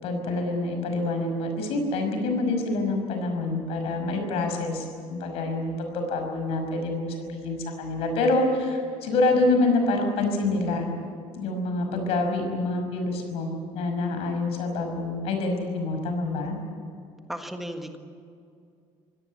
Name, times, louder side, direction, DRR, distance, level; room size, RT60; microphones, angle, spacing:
voice 1, 0.0-10.9 11.3-16.5, left 2 dB, 60° left, 5 dB, 5.5 m, -26 dB
voice 2, 17.3-18.0, equal, ahead, 4 dB, 1.6 m, -35 dB
24.5 x 17.5 x 8.4 m, 2.4 s
cardioid pair, 175°, 12 cm